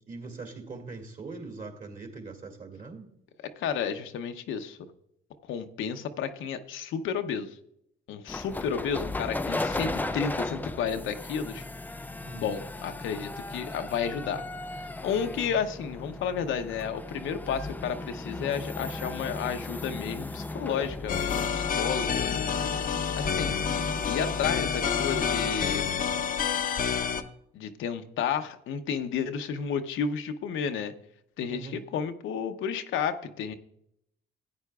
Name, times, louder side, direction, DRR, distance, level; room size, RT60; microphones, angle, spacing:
voice 1, 0.1-3.1 9.5-10.6 12.2-12.4 31.5-31.8, right 3 dB, 40° right, 2 dB, 2.2 m, -42 dB
voice 2, 3.6-4.8 5.4-7.6 8.1-11.6 12.3-14.4 14.7-22.5 23.2-23.6 24.1-25.9 27.5-30.9 31.4-33.5, left 7 dB, 80° left, 7 dB, 0.7 m, -32 dB
sound 1, 8.3-25.6, left 2 dB, 10° left, 0.3 m, -36 dB
sound 2, 21.1-27.2, left 7 dB, 45° left, 0.6 m, -29 dB
14.5 x 9.1 x 2.3 m, 0.77 s
cardioid pair, 90°, 20 cm